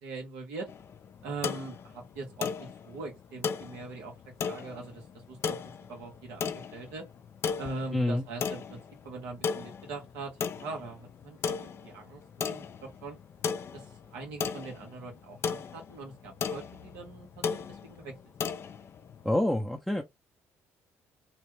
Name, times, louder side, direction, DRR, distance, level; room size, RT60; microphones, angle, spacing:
voice 1, 0.0-0.7 1.2-4.1 4.4-5.6 5.9-7.0 7.6-8.8 9.0-12.7 13.0-13.2 13.7-13.8 14.1-18.1, right 3 dB, 90° right, 1.5 m, -41 dB
sound 1, 0.7-19.4, left 6 dB, 50° left, 0.5 m, -37 dB
voice 2, 7.9-8.2 19.2-20.0, left 1 dB, ahead, 0.6 m, -27 dB
3.1 x 2.4 x 3.2 m
supercardioid pair, 75°, 6 cm